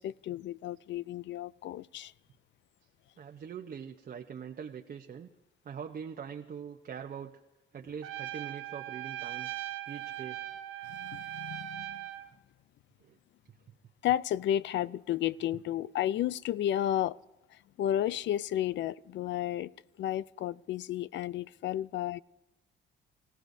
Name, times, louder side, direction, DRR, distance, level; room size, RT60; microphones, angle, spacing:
voice 1, 0.0-2.1 10.8-12.0 14.0-17.2 17.5-19.7 20.0-22.2, left 12 dB, 65° left, 0.4 m, -32 dB
voice 2, 3.2-5.3 5.6-7.4 7.7-9.5 9.9-10.4 13.0-13.2, right 7 dB, 45° right, 0.8 m, -43 dB
Trumpet, 8.0-12.3, right 14 dB, 85° right, 0.8 m, -40 dB
25.5 x 16.0 x 2.7 m
cardioid pair, 90°, 20 cm